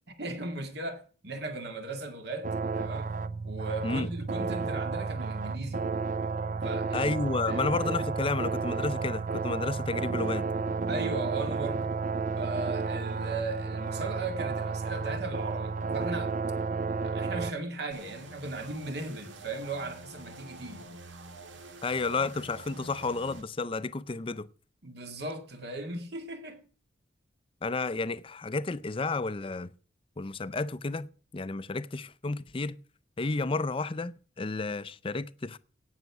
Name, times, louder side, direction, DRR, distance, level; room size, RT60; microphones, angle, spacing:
voice 1, 0.2-3.1 3.4-5.8 6.6-7.1 7.5-7.6 10.9-12.0 12.4-16.4 17.0-20.9 24.8-26.6, right 2 dB, 60° right, 2.1 m, -37 dB
sound 1, 2.4-17.5, right 4 dB, 45° right, 0.6 m, -32 dB
voice 2, 6.9-10.5 21.8-24.5 27.6-29.7 30.2-31.1 31.3-32.8 33.2-35.6, left 3 dB, 30° left, 0.5 m, -31 dB
sound 2, 17.9-23.4, right 2 dB, 80° right, 1.7 m, -47 dB
17.0 x 6.5 x 5.9 m
head